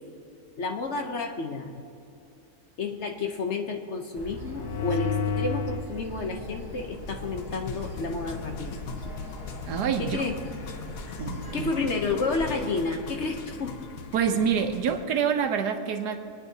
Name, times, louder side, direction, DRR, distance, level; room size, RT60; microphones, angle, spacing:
voice 1, 0.6-1.7 2.8-8.8 10.0-10.3 11.5-13.8, left 3 dB, 50° left, 3 dB, 1.0 m, -30 dB
sound 1, 4.1-12.6, equal, 20° right, 3.1 m, -41 dB
sound 2, 4.4-5.9 6.5-15.0, left 6 dB, 90° left, 1.4 m, -36 dB
voice 2, 9.7-10.2 11.2-11.7 14.1-16.2, right 7 dB, 85° right, 6 dB, 1.4 m, -26 dB
23.0 x 9.6 x 2.8 m, 2.7 s
omnidirectional pair, 1.7 m